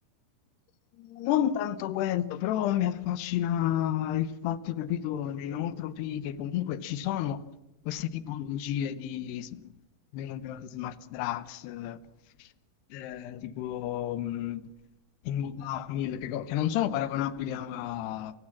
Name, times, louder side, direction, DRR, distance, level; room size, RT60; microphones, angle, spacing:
voice 1, 1.1-7.4 7.9-9.5 10.1-12.0 12.9-14.6 15.3-18.3, left 11 dB, 85° left, 3.0 m, -31 dB
29.0 x 14.5 x 7.3 m
omnidirectional pair, 4.7 m